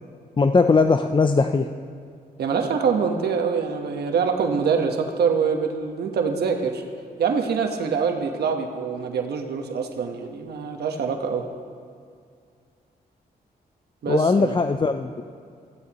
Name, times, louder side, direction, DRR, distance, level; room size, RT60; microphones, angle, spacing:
voice 1, 0.4-1.7 14.1-15.2, left 4 dB, 30° left, 7 dB, 0.5 m, -19 dB
voice 2, 2.4-6.8 7.2-11.4 14.0-14.6, right 6 dB, 85° right, 4 dB, 1.3 m, -24 dB
18.5 x 15.0 x 3.0 m, 2.3 s
cardioid pair, 75°, 16 cm